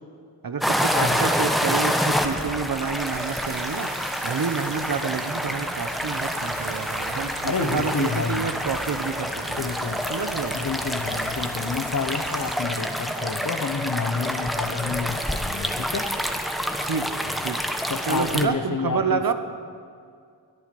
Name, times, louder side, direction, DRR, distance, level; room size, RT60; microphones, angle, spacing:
voice 1, 0.4-3.9 4.2-9.7 10.1-10.5 16.8-17.1 17.4-17.6 18.1-19.3, right 5 dB, 55° right, 9 dB, 0.9 m, -28 dB
sound 1, 0.6-18.5, equal, ahead, 1.0 m, -27 dB
voice 2, 0.9-1.3 7.4-8.5 9.6-10.1 10.5-16.1 17.2-17.3 17.9-19.3, left 5 dB, 45° left, 9 dB, 1.0 m, -29 dB
sound 2, 2.3-12.6, right 5 dB, 80° right, 1.2 m, -42 dB
22.0 x 10.5 x 5.3 m, 2.2 s
wide cardioid pair, 100°, 43 cm